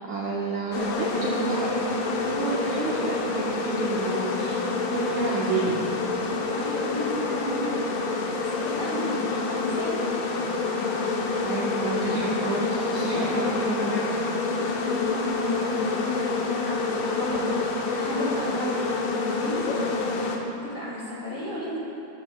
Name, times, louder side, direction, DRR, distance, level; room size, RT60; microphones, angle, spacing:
voice 1, 0.1-4.6 4.9-5.9 9.0-9.1 11.4-14.1 14.5-14.7, right 3 dB, 60° right, -6 dB, 2.2 m, -30 dB
sound 1, 0.7-20.4, left 3 dB, 80° left, 3.0 m, -27 dB
voice 2, 6.1-8.1 8.4-10.0 13.0-13.8 14.5-19.8 20.3-21.8, left 1 dB, 25° left, -7 dB, 2.4 m, -33 dB
17.5 x 14.5 x 2.3 m, 2.9 s
omnidirectional pair, 4.6 m